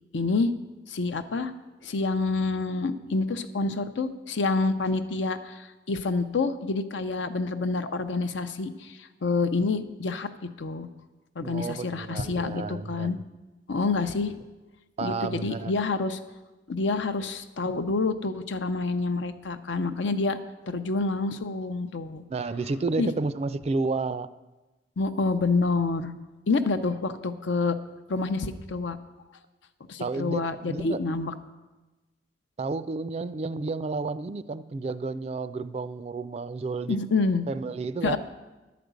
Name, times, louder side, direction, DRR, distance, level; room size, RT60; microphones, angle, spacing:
voice 1, 0.1-0.5 0.9-1.5 1.8-10.9 11.4-13.2 13.7-14.3 15.0-16.2 16.7-20.4 20.7-22.2 23.0-23.1 25.0-26.1 26.5-27.8 28.1-29.0 29.9-31.3 36.9-37.5 38.0-38.2, left 3 dB, 90° left, 9 dB, 0.6 m, -27 dB
voice 2, 11.4-13.1 15.0-15.7 22.3-24.3 30.0-31.2 32.6-37.0 37.5-38.2, right 3 dB, 35° right, 14 dB, 0.3 m, -31 dB
11.0 x 5.1 x 8.1 m, 1.1 s
head